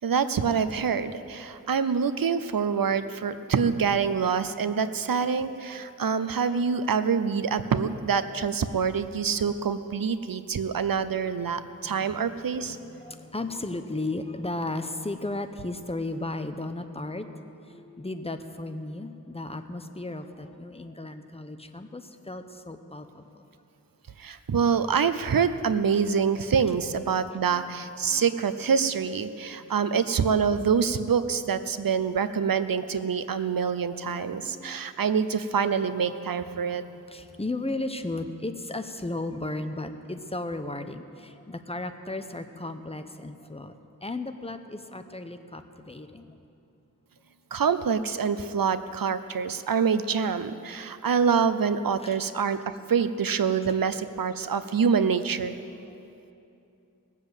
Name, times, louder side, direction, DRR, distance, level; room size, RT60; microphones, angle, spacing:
voice 1, 0.0-12.8 24.2-36.8 47.5-52.6 52.9-55.6, right 6 dB, 75° right, 12 dB, 0.7 m, -26 dB
voice 2, 11.5-12.2 12.5-23.4 27.5-27.7 28.1-28.3 29.6-29.7 34.2-34.9 36.9-46.3 52.0-52.2, left 2 dB, 15° left, 8 dB, 0.9 m, -35 dB
18.5 x 7.4 x 8.1 m, 2.8 s
wide cardioid pair, 60°, 34 cm